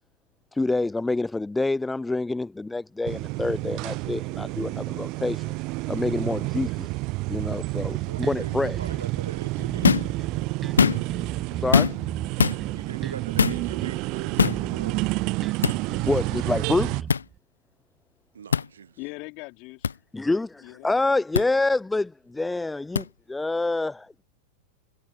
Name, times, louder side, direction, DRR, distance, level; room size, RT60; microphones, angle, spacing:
voice 1, 0.5-5.6 5.9-6.9 7.3-8.8 11.6-12.0 16.1-17.1 20.1-24.2, left 2 dB, 10° left, 0.7 m, -27 dB
sound 1, 3.0-17.0, right 24 dB, 40° right, 0.3 m, -30 dB
Bass guitar, 7.8-9.2 9.6-14.0 14.4-17.4, right 7 dB, 20° right, 6.7 m, -37 dB
voice 2, 8.1-10.1 12.7-15.1 18.3-19.0, right 7 dB, 70° right, 1.2 m, -41 dB
sound 2, 9.8-10.1 10.6-11.2 11.7-12.1 12.4-12.6 13.4-13.6 14.4-14.6 15.6-15.8 17.1-17.2 18.5-18.7 19.8-19.9 21.3-21.5 23.0-23.1, left 6 dB, 70° left, 0.4 m, -21 dB
voice 3, 19.0-19.9 20.6-21.1, left 29 dB, 45° left, 3.5 m, -40 dB
figure-of-eight pair, 90°, 0 cm